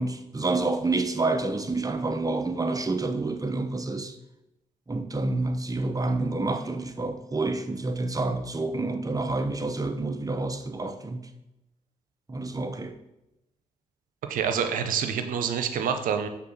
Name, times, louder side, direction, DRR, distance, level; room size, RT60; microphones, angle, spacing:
voice 1, 0.0-4.2 4.9-11.3 12.3-13.0, right 2 dB, 25° right, 0.9 m, -28 dB
voice 2, 14.3-16.3, right 7 dB, 80° right, 0.7 m, -27 dB
6.0 x 3.9 x 6.1 m
supercardioid pair, 45°, 14 cm